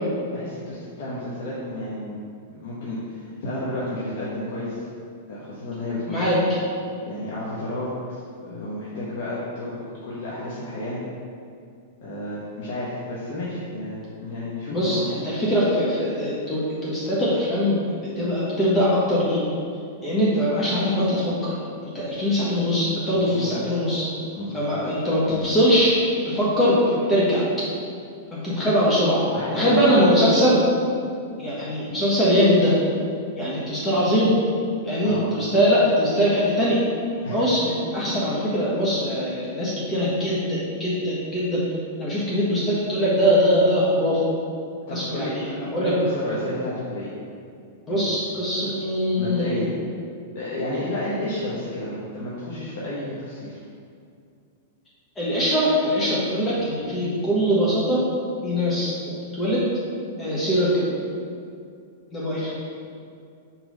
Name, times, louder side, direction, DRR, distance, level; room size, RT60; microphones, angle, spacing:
voice 1, 0.3-2.2 2.5-4.9 5.3-6.2 7.0-9.7 10.0-11.0 12.0-15.0 23.1-23.5 24.4-24.7 29.3-29.9 35.0-35.3 37.2-37.5 44.9-45.4 45.8-47.1 47.9-48.1 48.5-48.7 49.2-49.7 50.3-53.6, left 1 dB, 60° left, -8 dB, 1.2 m, -31 dB
voice 2, 14.7-17.8 18.2-19.4 20.0-21.5 21.9-24.0 24.5-25.9 26.2-27.4 28.3-29.2 29.5-30.6 31.4-32.7 33.4-34.4 34.8-36.8 37.3-41.6 42.0-44.2 44.9-45.9 47.9-49.6 55.2-58.0 58.4-59.6 60.2-60.9 62.1-62.5, equal, 20° left, -8 dB, 1.2 m, -22 dB
4.4 x 4.1 x 5.3 m, 2.4 s
hypercardioid pair, 135°, 0 cm